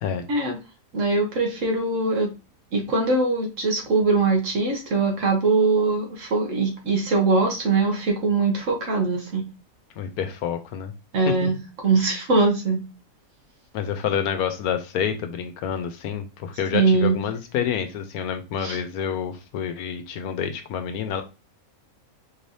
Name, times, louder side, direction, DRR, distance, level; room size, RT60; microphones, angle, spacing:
voice 1, 0.9-2.3 2.7-9.4 11.1-12.8 16.7-17.2 18.6-18.8, right 3 dB, 60° right, 2 dB, 1.4 m, -22 dB
voice 2, 10.0-10.9 11.3-11.5 13.7-21.2, left 8 dB, 85° left, 8 dB, 1.1 m, -28 dB
4.5 x 3.2 x 2.7 m, 0.29 s
omnidirectional pair, 1.6 m